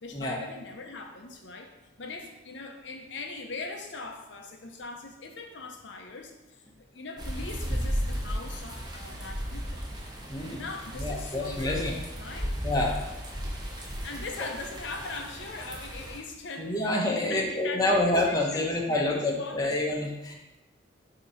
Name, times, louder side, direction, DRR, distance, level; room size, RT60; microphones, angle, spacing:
voice 1, 0.0-9.8 10.6-11.9 12.2-12.6 14.0-19.8, left 3 dB, 65° left, 3 dB, 0.6 m, -41 dB
sound 1, 7.2-16.2, equal, 20° right, 0.8 m, -35 dB
voice 2, 11.0-11.9 12.6-13.1 16.6-20.3, left 1 dB, 20° left, -1 dB, 0.8 m, -27 dB
6.9 x 2.9 x 5.5 m, 0.99 s
head